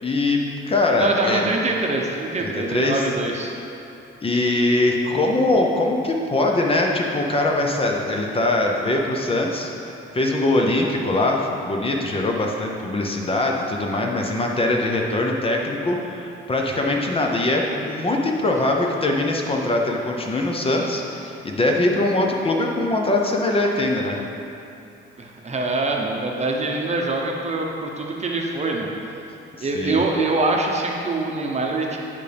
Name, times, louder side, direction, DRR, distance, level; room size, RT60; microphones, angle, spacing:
voice 1, 0.0-1.5 2.4-3.0 4.2-24.2 29.6-30.0, left 2 dB, 25° left, 0 dB, 0.7 m, -22 dB
voice 2, 1.0-3.5 25.2-29.2 29.6-32.0, right 2 dB, 35° right, 0 dB, 0.8 m, -24 dB
9.3 x 5.2 x 3.4 m, 2.8 s
cardioid pair, 105°, 20 cm